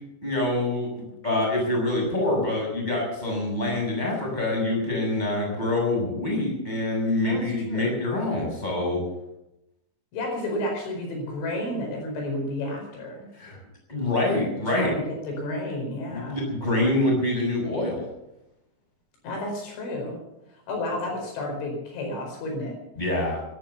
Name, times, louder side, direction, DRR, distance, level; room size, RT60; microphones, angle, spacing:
voice 1, 0.2-9.0 13.4-13.6 13.9-14.9 16.1-18.0 23.0-23.4, left 2 dB, 10° left, -1 dB, 6.4 m, -25 dB
voice 2, 10.1-13.3 14.8-16.4 19.2-20.2 20.7-22.7, left 1 dB, 80° left, 1 dB, 7.1 m, -31 dB
17.0 x 11.5 x 7.1 m, 0.89 s
omnidirectional pair, 5.3 m